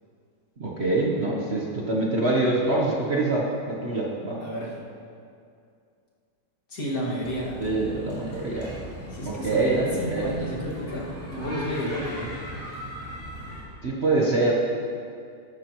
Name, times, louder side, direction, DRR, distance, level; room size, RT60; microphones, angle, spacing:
voice 1, 0.6-4.4 7.6-8.7 9.3-10.3 13.8-14.5, right 2 dB, 40° right, -3 dB, 1.1 m, -25 dB
voice 2, 4.4-4.8 6.7-7.6 9.1-12.3, equal, 55° left, -5 dB, 2.4 m, -31 dB
sound 1, 7.2-13.6, equal, 10° left, 2.4 m, -38 dB
13.5 x 12.0 x 3.0 m, 2.4 s
omnidirectional pair, 1.9 m